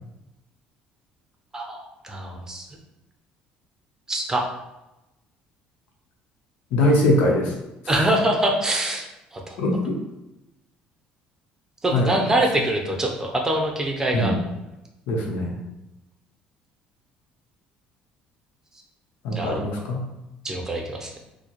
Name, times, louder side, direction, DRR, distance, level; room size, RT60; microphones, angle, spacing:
voice 1, 1.5-2.7 4.1-4.5 7.9-9.1 9.3-9.6 11.8-14.3 19.3-19.7 20.4-21.2, right 1 dB, 15° right, 1 dB, 0.6 m, -24 dB
voice 2, 6.7-7.5 9.6-10.0 11.9-12.1 14.1-14.4 15.1-15.5 19.2-20.0, left 1 dB, 85° left, -1 dB, 0.8 m, -21 dB
4.5 x 2.1 x 3.0 m, 0.95 s
cardioid pair, 110°, 3 cm